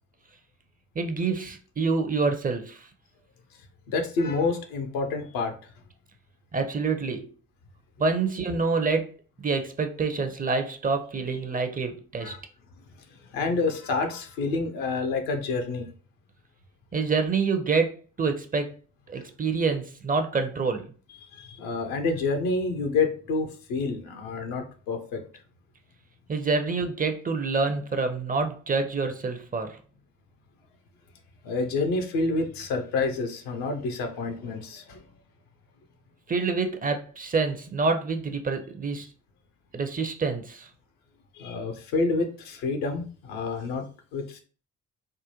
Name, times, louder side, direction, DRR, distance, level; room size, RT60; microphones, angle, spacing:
voice 1, 1.0-2.9 6.5-7.3 8.0-9.1 9.4-12.3 16.9-18.7 19.1-20.9 26.3-29.8 36.3-39.1 39.7-40.7, right 4 dB, 25° right, 0.5 m, -27 dB
voice 2, 3.9-5.5 12.2-12.4 13.3-15.9 21.3-25.2 31.4-35.0 41.3-43.9 44.1-44.4, left 3 dB, 65° left, 0.7 m, -28 dB
3.7 x 2.1 x 2.9 m
figure-of-eight pair, 40°, 37 cm